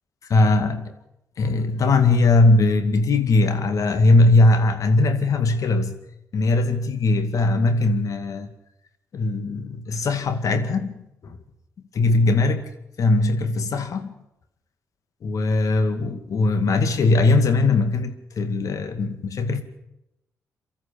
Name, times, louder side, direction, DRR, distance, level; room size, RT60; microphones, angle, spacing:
voice 1, 0.3-0.9 1.4-6.0 6.3-8.5 9.1-11.4 11.9-12.7 13.0-14.1 15.2-19.6, left 2 dB, 65° left, 2.2 m, -20 dB
23.5 x 13.5 x 8.6 m
supercardioid pair, 55°, 6 cm